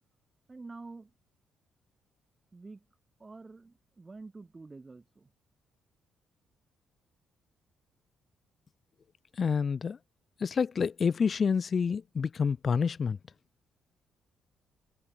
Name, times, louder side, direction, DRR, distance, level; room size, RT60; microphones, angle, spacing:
voice 1, 0.5-1.1 2.5-2.9 3.2-5.3, right 3 dB, 25° right, 2.4 m, -47 dB
voice 2, 9.4-10.0 10.4-13.2, left 6 dB, 45° left, 1.0 m, -28 dB
cardioid pair, 90°, 0 cm